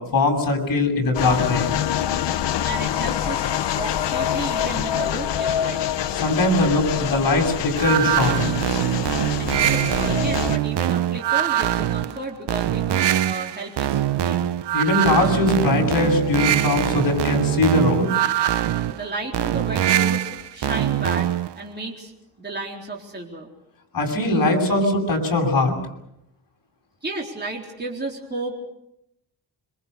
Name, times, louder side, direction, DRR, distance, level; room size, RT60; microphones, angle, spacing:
voice 1, 0.0-1.8 6.2-8.5 14.7-18.1 23.9-25.7, left 2 dB, 50° left, 2 dB, 7.4 m, -21 dB
sound 1, 1.1-10.6, left 10 dB, 70° left, 1.0 m, -25 dB
voice 2, 2.6-5.8 9.4-14.5 18.9-21.3 21.6-22.1 22.4-23.5 27.0-28.6, right 2 dB, 20° right, -1 dB, 4.1 m, -33 dB
sound 2, 7.8-21.6, right 12 dB, 65° right, 0.9 m, -23 dB
26.0 x 25.0 x 6.8 m, 0.81 s
wide cardioid pair, 135°, 44 cm